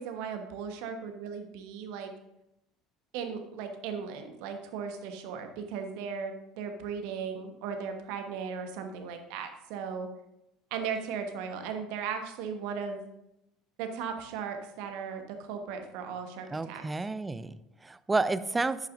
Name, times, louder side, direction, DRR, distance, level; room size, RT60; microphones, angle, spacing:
voice 1, 0.0-2.1 3.1-10.1 10.7-13.0 13.8-16.8, right 6 dB, 60° right, 6 dB, 1.2 m, -37 dB
voice 2, 16.5-18.9, right 3 dB, 15° right, 15 dB, 0.5 m, -31 dB
10.5 x 8.8 x 2.6 m, 0.86 s
figure-of-eight pair, 65°, 0 cm